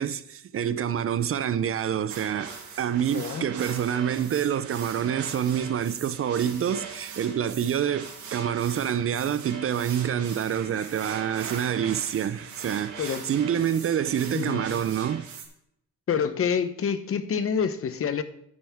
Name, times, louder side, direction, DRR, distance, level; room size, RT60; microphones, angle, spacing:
voice 1, 0.0-15.3, right 9 dB, 45° right, 0.6 m, -27 dB
sound 1, 2.1-15.5, right 6 dB, 75° right, 2.0 m, -40 dB
voice 2, 3.1-3.5 13.0-13.3 14.3-14.6 16.1-18.2, left 7 dB, 50° left, 0.9 m, -27 dB
9.5 x 9.2 x 3.6 m
cardioid pair, 90°, 30 cm